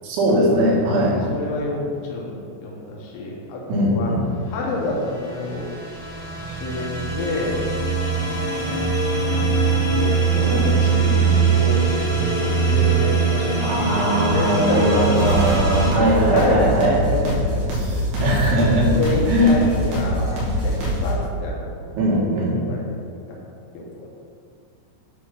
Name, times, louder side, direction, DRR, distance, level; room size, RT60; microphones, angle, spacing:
voice 1, 0.0-1.2 3.7-4.3 13.6-17.0 18.2-19.0 19.3-19.5 22.0-22.6, equal, 90° right, -4 dB, 4.0 m, -20 dB
voice 2, 0.8-4.1 4.5-5.7 6.4-7.6 8.5-9.6 9.9-11.8 12.4-15.4 15.9-17.8 18.1-18.3 18.9-22.0 22.6-23.0 23.3-23.4 23.7-24.1, left 2 dB, 75° left, -3 dB, 3.1 m, -28 dB
sound 1, 4.9-15.9, right 5 dB, 45° left, 2.1 m, -21 dB
sound 2, 15.1-21.1, equal, 75° right, 3.7 m, -24 dB
9.7 x 3.7 x 6.1 m, 2.3 s
omnidirectional pair, 5.2 m